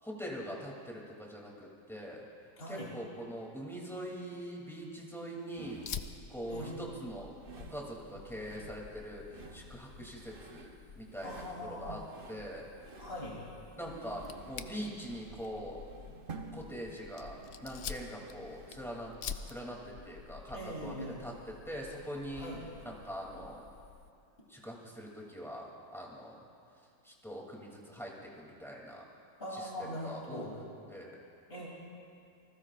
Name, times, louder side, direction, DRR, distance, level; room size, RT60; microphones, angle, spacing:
voice 1, 0.0-2.3 2.7-5.9 6.3-12.0 12.3-12.7 13.7-15.8 16.5-19.1 19.4-22.5 22.8-23.6 24.5-26.4 27.0-29.0 29.5-31.2, equal, ahead, -3 dB, 2.7 m, -43 dB
voice 2, 2.6-2.9 6.5-6.9 11.2-12.1 13.0-13.4 20.5-21.2 22.3-22.6 29.4-30.6 31.5-31.7, equal, 30° left, -5 dB, 3.5 m, -41 dB
sound 1, 5.5-19.0, right 4 dB, 40° right, 0.9 m, -53 dB
Fire, 5.8-24.1, left 7 dB, 65° left, 0.6 m, -49 dB
28.5 x 20.0 x 2.5 m, 2.4 s
omnidirectional pair, 1.9 m